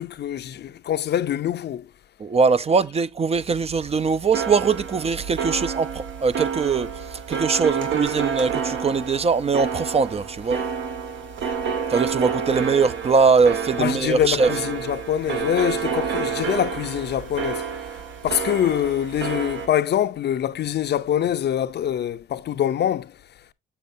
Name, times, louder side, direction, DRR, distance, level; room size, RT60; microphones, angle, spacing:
voice 1, 0.0-1.9 13.8-17.6 18.2-23.1, left 10 dB, 55° left, 0.6 m, -24 dB
voice 2, 2.2-10.6 11.9-14.5, right 5 dB, 30° right, 0.6 m, -21 dB
sound 1, 3.3-19.7, right 6 dB, 70° right, 1.7 m, -29 dB
7.2 x 6.8 x 2.7 m
cardioid pair, 90°, 20 cm